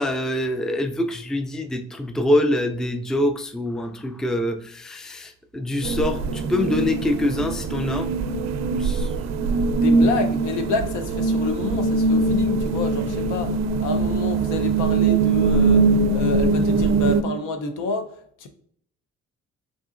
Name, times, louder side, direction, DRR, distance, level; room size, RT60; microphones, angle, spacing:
voice 1, 0.0-8.1 8.8-9.1, left 1 dB, ahead, 7 dB, 0.3 m, -25 dB
sound 1, 5.8-17.2, right 3 dB, 60° right, 0.4 m, -22 dB
voice 2, 9.7-18.1 18.4-18.5, left 4 dB, 85° left, 7 dB, 0.7 m, -28 dB
4.0 x 3.7 x 2.4 m, 0.64 s
cardioid pair, 90°, 30 cm